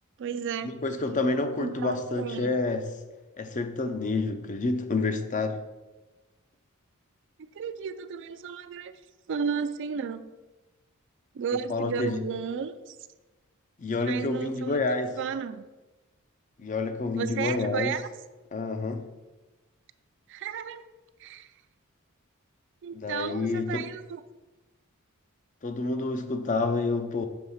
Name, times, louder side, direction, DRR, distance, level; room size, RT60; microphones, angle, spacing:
voice 1, 0.2-0.7 1.6-2.5 7.4-8.9 9.3-10.3 11.3-13.0 14.0-14.9 15.2-15.6 17.1-18.1 20.3-20.9 21.2-21.5 22.8-24.2, right 6 dB, 55° right, 12 dB, 0.4 m, -33 dB
voice 2, 0.8-2.9 3.4-5.6 11.7-12.2 13.8-15.2 16.6-17.9 18.5-19.1 22.9-23.8 25.6-27.3, left 3 dB, 35° left, 8 dB, 0.5 m, -28 dB
6.9 x 3.5 x 5.6 m, 1.1 s
head